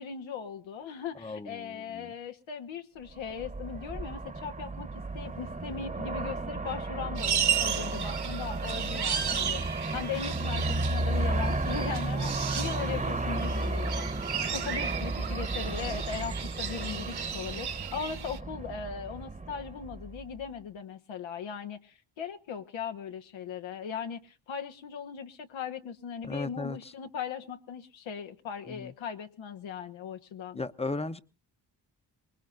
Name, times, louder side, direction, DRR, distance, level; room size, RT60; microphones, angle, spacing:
voice 1, 0.0-4.9 5.1-14.1 14.5-30.6, left 7 dB, 80° left, 1.4 m, -39 dB
voice 2, 1.2-2.1 26.2-26.8 28.7-28.9 30.5-31.2, left 3 dB, 15° left, 0.9 m, -36 dB
Aircraft, 3.2-20.4, right 2 dB, 15° right, 1.2 m, -33 dB
sound 1, 7.2-18.4, right 8 dB, 55° right, 1.6 m, -34 dB
24.0 x 20.5 x 2.6 m
cardioid pair, 65°, 46 cm